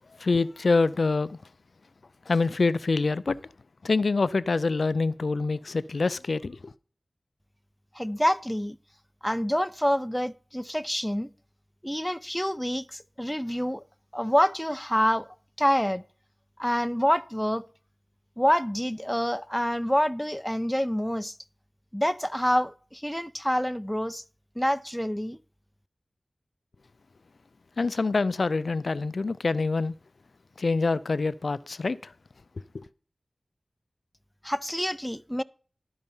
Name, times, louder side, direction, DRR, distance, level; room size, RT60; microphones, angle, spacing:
voice 1, 0.2-1.4 2.3-3.4 3.8-6.7 27.8-29.9 30.6-32.1 32.7-32.8, left 3 dB, 75° left, 0.3 m, -25 dB
voice 2, 8.0-8.8 9.2-11.3 11.8-13.8 14.1-15.3 15.6-16.0 16.6-17.6 18.4-21.3 21.9-24.2 24.6-25.4 34.4-35.4, equal, 5° left, 0.4 m, -27 dB
12.0 x 5.5 x 5.4 m
wide cardioid pair, 55°, 0 cm